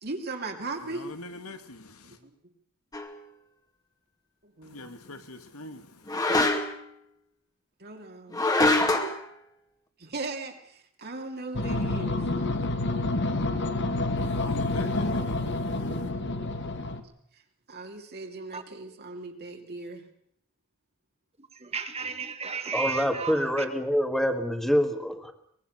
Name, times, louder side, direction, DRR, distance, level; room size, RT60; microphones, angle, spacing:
voice 1, 0.0-1.1 2.1-2.3 4.4-4.9 7.8-8.4 10.0-12.2 17.7-20.0, right 3 dB, 50° right, 2.9 m, -38 dB
voice 2, 0.8-2.2 4.6-6.2 14.2-16.1, left 2 dB, 85° left, 2.5 m, -44 dB
sound 1, 2.9-3.1 6.1-6.9 8.3-9.2, left 2 dB, 15° left, 2.3 m, -24 dB
sound 2, 11.6-17.0, left 2 dB, 55° left, 2.1 m, -28 dB
voice 3, 21.6-23.7, right 5 dB, 30° right, 2.1 m, -34 dB
voice 4, 22.7-25.3, equal, ahead, 2.1 m, -26 dB
23.5 x 21.5 x 6.7 m
head